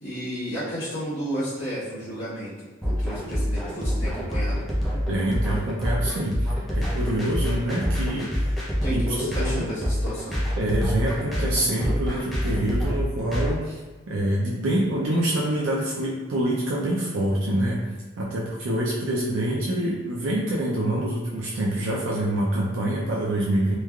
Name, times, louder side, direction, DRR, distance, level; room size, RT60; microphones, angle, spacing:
voice 1, 0.0-4.7 8.8-10.5, equal, 60° left, -14 dB, 0.9 m, -32 dB
sound 1, 2.8-13.5, equal, ahead, 0.5 m, -26 dB
voice 2, 5.1-8.6 8.9-9.7 10.6-13.8 14.1-17.8 18.2-23.8, right 1 dB, 85° right, -4 dB, 0.4 m, -26 dB
3.1 x 2.3 x 2.2 m, 1.3 s
head